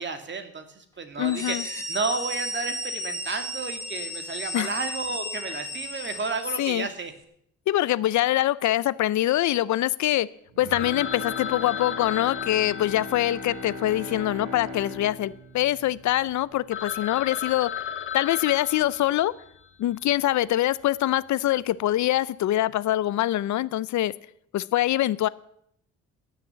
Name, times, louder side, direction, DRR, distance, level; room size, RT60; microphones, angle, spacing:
voice 1, 0.0-7.1, right 4 dB, 40° right, 7 dB, 2.1 m, -32 dB
voice 2, 1.2-1.6 4.5-4.7 6.6-6.9 7.7-10.3 10.6-17.7 18.1-19.3 19.8-24.1 24.5-25.3, left 14 dB, 70° left, 19 dB, 0.6 m, -24 dB
sound 1, 1.2-6.9, equal, 10° left, 3.1 m, -34 dB
Bowed string instrument, 10.5-16.8 17.2-17.3, left 2 dB, 70° right, 5.5 m, -39 dB
Telephone, 10.7-15.1 15.3-15.4 16.0-16.1 16.4-16.5 16.7-19.7, left 9 dB, 40° left, 1.0 m, -35 dB
17.0 x 6.7 x 8.0 m, 0.71 s
cardioid pair, 90°, 30 cm